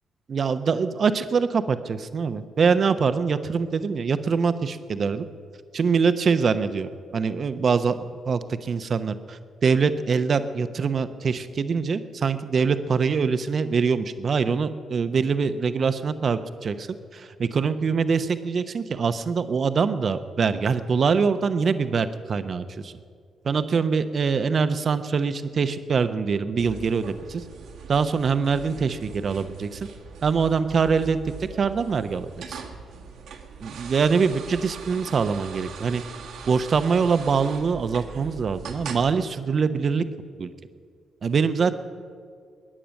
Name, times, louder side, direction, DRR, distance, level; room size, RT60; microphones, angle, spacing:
voice 1, 0.3-5.3 5.7-16.9 17.1-22.9 23.4-27.4 27.9-29.9 30.2-31.2 31.6-32.6 33.6-36.0 36.5-40.0 40.4-40.5 41.2-41.7, right 5 dB, 50° right, 11 dB, 0.9 m, -24 dB
sound 1, 26.6-39.1, right 6 dB, 70° right, 1.5 m, -41 dB
21.5 x 10.0 x 6.5 m, 2.1 s
hypercardioid pair, 40°, 0 cm